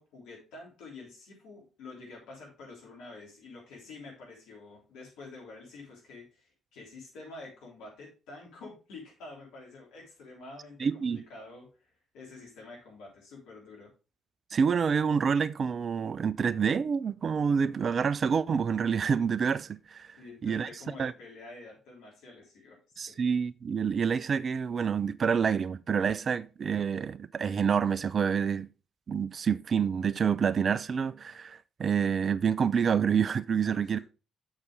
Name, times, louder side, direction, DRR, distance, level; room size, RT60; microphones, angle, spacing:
voice 1, 0.0-13.9 20.2-23.2 33.6-34.0, left 3 dB, 65° left, 3.3 m, -48 dB
voice 2, 10.8-11.2 14.5-20.2 20.4-20.7 21.0-21.1 23.0-28.7 29.1-34.0, right 6 dB, 45° right, 0.4 m, -27 dB
7.1 x 6.6 x 3.5 m
figure-of-eight pair, 45°, 0 cm